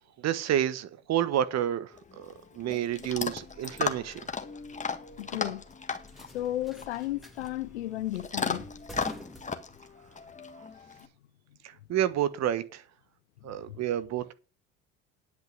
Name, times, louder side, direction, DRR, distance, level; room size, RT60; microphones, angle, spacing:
voice 1, 0.2-1.9 2.2-4.2 11.9-12.8 13.4-14.3, right 11 dB, 55° right, 1.4 m, -29 dB
Chewing mastication / Dog, 1.9-11.1, left 5 dB, 20° left, 1.6 m, -36 dB
sound 1, 3.0-10.2, equal, ahead, 2.5 m, -50 dB
voice 2, 5.2-5.6 6.3-8.7 11.0-11.1 13.4-13.8, left 14 dB, 90° left, 0.8 m, -34 dB
10.5 x 6.2 x 7.5 m
hypercardioid pair, 70°, 33 cm